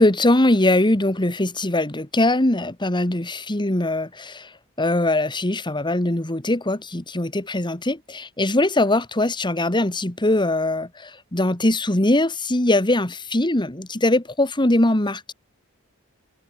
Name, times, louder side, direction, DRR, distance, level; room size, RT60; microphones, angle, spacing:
voice 1, 0.0-4.5 4.8-15.3, left 1 dB, 20° left, 1.8 m, -21 dB
head